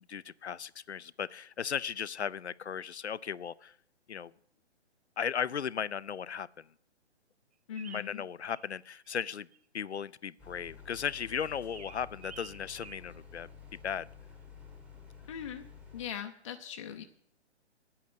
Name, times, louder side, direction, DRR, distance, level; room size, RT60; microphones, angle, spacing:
voice 1, 0.1-3.7 4.1-4.3 5.2-6.6 7.9-9.5 9.7-13.5 13.8-14.1, left 7 dB, 70° left, 18 dB, 0.6 m, -36 dB
voice 2, 7.7-8.2 15.3-15.7 15.9-17.0, left 8 dB, 25° left, 5 dB, 0.6 m, -40 dB
sound 1, 7.8-8.7 8.9-9.6 11.2-13.0, right 8 dB, 30° right, 0.8 m, -50 dB
sound 2, 10.4-16.0, left 6 dB, 5° right, 1.0 m, -51 dB
9.1 x 8.7 x 9.2 m, 0.69 s
figure-of-eight pair, 135°, 35 cm